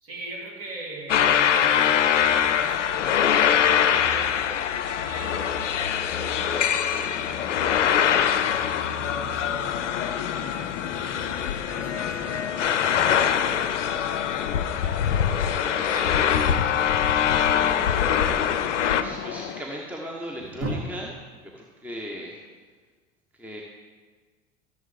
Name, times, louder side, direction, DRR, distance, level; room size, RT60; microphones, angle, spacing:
voice 1, 0.0-8.4 8.8-11.4 11.7-14.1 14.8-17.2 17.8-18.3 20.4-20.8, right 2 dB, 40° right, -1 dB, 2.6 m, -41 dB
sound 1, 1.1-19.0, left 8 dB, 75° left, 0.6 m, -23 dB
sound 2, 1.3-19.6, left 10 dB, 35° left, 0.5 m, -37 dB
voice 2, 18.9-21.0 21.4-22.4 23.4-23.6, equal, 5° right, -1 dB, 0.9 m, -37 dB
14.0 x 7.0 x 3.4 m, 1.5 s
figure-of-eight pair, 80°, 36 cm